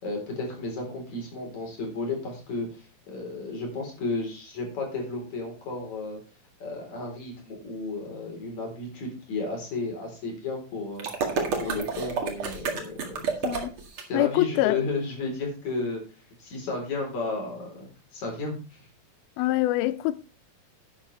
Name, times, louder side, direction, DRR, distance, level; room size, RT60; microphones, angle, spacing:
voice 1, 0.0-6.2 6.6-13.3 14.1-16.0 16.4-18.9, left 3 dB, 50° left, 5.1 m, -33 dB
sound 1, 11.0-14.0, right 5 dB, 45° right, 2.2 m, -29 dB
voice 2, 14.1-14.8 19.4-20.2, left 16 dB, 80° left, 2.4 m, -24 dB
11.5 x 9.9 x 3.3 m
omnidirectional pair, 4.4 m